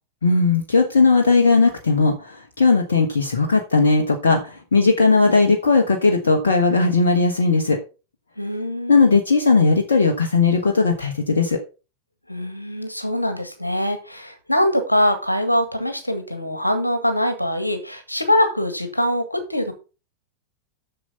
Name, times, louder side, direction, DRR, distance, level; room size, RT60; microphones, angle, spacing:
voice 1, 0.2-7.8 8.9-11.6, left 4 dB, 70° left, 3 dB, 1.3 m, -17 dB
voice 2, 8.4-9.1 12.3-19.7, left 1 dB, 85° left, 7 dB, 1.8 m, -23 dB
7.8 x 6.9 x 5.5 m, 0.32 s
figure-of-eight pair, 90°, 0 cm